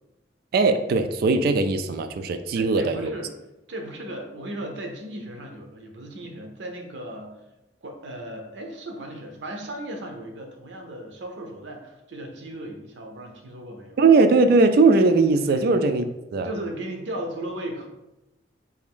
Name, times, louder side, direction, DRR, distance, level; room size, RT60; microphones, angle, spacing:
voice 1, 0.5-3.1 14.0-16.0 16.3-16.5, right 3 dB, 60° right, 8 dB, 0.3 m, -19 dB
voice 2, 2.5-3.3 3.7-7.4 7.8-14.0 15.5-15.7 16.4-17.9, right 1 dB, 90° right, 3 dB, 0.7 m, -36 dB
3.4 x 2.5 x 3.6 m, 0.96 s
head